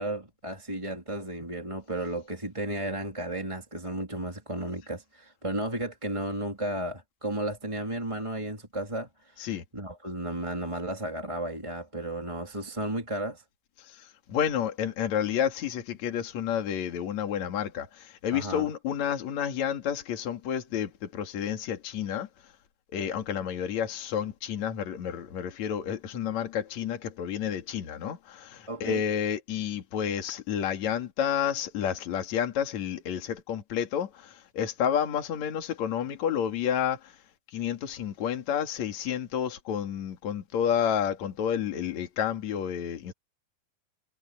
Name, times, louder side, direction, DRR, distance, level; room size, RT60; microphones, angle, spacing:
voice 1, 0.0-13.4 18.3-18.7 28.7-29.0, right 1 dB, 10° right, 2.8 m, -34 dB
voice 2, 14.0-22.3 22.9-37.1 37.5-43.1, left 9 dB, 55° left, 3.2 m, -30 dB
omnidirectional pair, 4.3 m